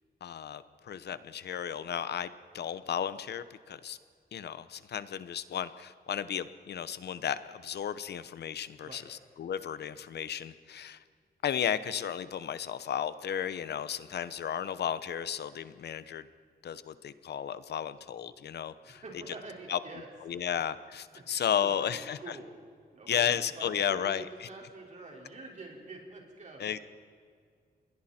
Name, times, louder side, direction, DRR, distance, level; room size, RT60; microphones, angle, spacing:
voice 1, 0.2-4.0 4.3-11.0 11.4-16.3 16.6-19.0 19.7-19.8 20.3-22.2 23.1-24.5 26.6-26.8, left 9 dB, 80° left, 14 dB, 0.9 m, -34 dB
voice 2, 18.8-20.1 21.1-21.3 21.6-22.5 22.9-26.8, right 3 dB, 45° right, -1 dB, 5.0 m, -46 dB
29.0 x 21.5 x 4.4 m, 2.1 s
wide cardioid pair, 130°, 17 cm